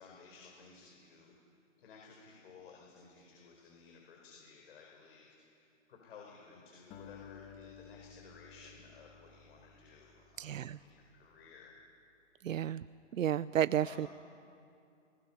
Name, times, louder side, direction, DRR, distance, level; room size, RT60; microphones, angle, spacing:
voice 1, 0.0-1.3 1.8-5.3 5.5-11.7 13.8-14.1, left 5 dB, 50° left, -1 dB, 4.6 m, -56 dB
Acoustic guitar, 6.9-11.4, left 7 dB, 20° left, 1.6 m, -55 dB
voice 2, 10.4-10.8 12.4-12.8 13.1-14.1, right 10 dB, 85° right, 18 dB, 0.6 m, -32 dB
27.5 x 20.0 x 5.6 m, 2.6 s
hypercardioid pair, 155°, 38 cm